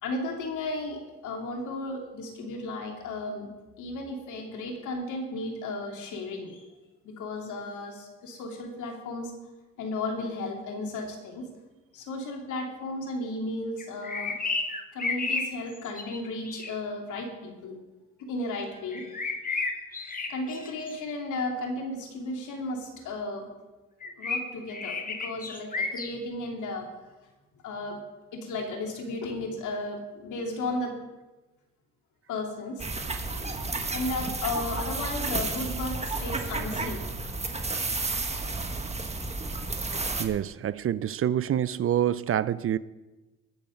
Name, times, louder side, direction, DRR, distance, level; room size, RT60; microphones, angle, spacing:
voice 1, 0.0-3.5 3.8-6.6 7.0-9.3 9.8-11.4 11.9-14.4 14.9-17.8 18.2-23.5 24.2-26.9 27.6-28.0 28.3-30.9 32.3-33.5 33.9-37.3, left 2 dB, 80° left, 2.9 m, -34 dB
sound 1, 13.8-16.8 18.9-20.9 24.0-26.1, left 4 dB, 30° left, 1.4 m, -32 dB
sound 2, 32.8-40.2, right 3 dB, 20° right, 1.5 m, -32 dB
voice 2, 40.2-42.8, right 10 dB, 45° right, 0.5 m, -27 dB
20.5 x 7.1 x 5.3 m
cardioid pair, 90°, 30 cm